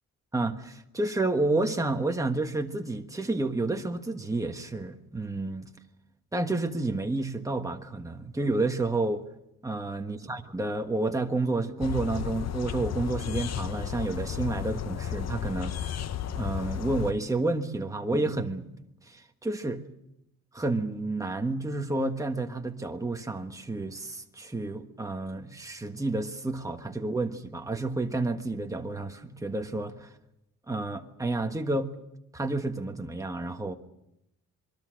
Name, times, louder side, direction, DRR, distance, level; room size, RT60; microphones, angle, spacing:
voice 1, 0.3-5.7 6.3-9.2 9.6-16.0 16.4-18.7 19.1-19.8 20.5-30.1 30.7-31.9 32.3-33.7, right 2 dB, 10° right, 1.5 m, -30 dB
sound 1, 11.8-17.1, left 9 dB, 55° left, 0.8 m, -33 dB
26.0 x 23.5 x 6.4 m
wide cardioid pair, 165°, 32 cm